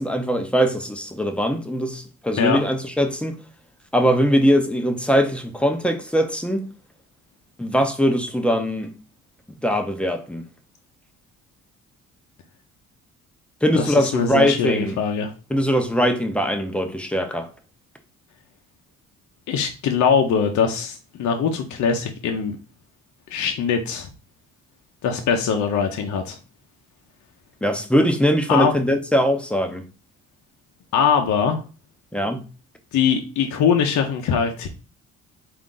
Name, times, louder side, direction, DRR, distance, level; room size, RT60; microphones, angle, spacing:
voice 1, 0.0-3.4 3.9-6.7 7.6-8.9 9.6-10.4 13.6-15.0 15.5-17.5 27.6-29.8 32.1-32.4, equal, 5° left, 0.6 m, -21 dB
voice 2, 13.7-15.3 19.5-22.6 23.3-24.1 25.0-26.4 28.5-28.7 30.9-31.6 32.9-34.7, left 6 dB, 70° left, 0.6 m, -22 dB
3.8 x 2.5 x 3.7 m
cardioid pair, 90°, 30 cm